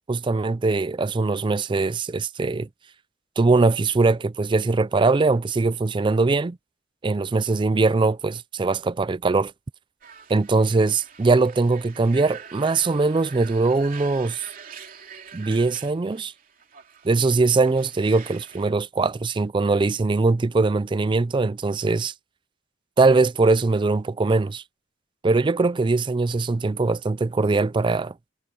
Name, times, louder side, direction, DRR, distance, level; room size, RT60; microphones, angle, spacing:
voice 1, 0.1-2.7 3.4-6.6 7.0-9.5 10.3-14.5 15.3-16.3 17.0-22.1 23.0-24.6 25.2-28.1, right 3 dB, 25° right, 0.4 m, -21 dB
sound 1, 10.0-18.7, right 7 dB, 50° right, 2.9 m, -44 dB
head